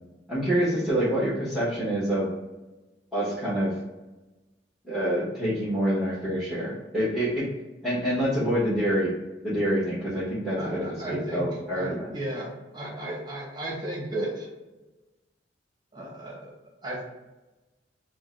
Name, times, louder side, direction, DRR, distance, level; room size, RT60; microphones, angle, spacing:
voice 1, 0.3-2.3 3.1-3.7 4.8-7.5 7.8-9.1 9.4-12.1, equal, 5° right, -11 dB, 1.2 m, -26 dB
voice 2, 10.6-14.5 15.9-16.5 16.8-17.0, right 1 dB, 25° right, -3 dB, 1.1 m, -34 dB
3.7 x 2.2 x 3.7 m, 1.1 s
head